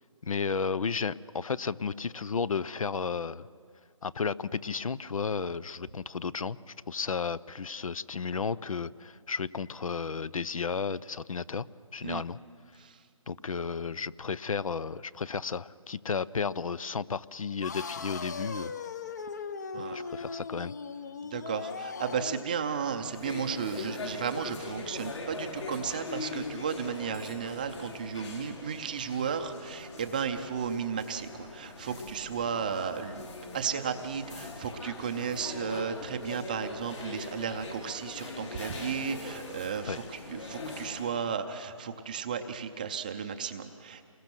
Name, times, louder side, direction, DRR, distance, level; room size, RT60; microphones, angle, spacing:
voice 1, 0.2-3.5 4.0-11.7 11.9-12.4 13.3-18.7 19.8-20.7 39.8-40.0, left 5 dB, 75° left, 19 dB, 0.7 m, -33 dB
sound 1, 17.6-22.5, left 5 dB, 30° left, 0.7 m, -39 dB
voice 2, 21.2-33.3 33.5-44.0, right 6 dB, 15° right, 7 dB, 0.6 m, -34 dB
sound 2, 22.8-41.3, left 3 dB, 60° left, 5.1 m, -42 dB
28.5 x 21.0 x 6.1 m, 2.2 s
hypercardioid pair, 165°, 18 cm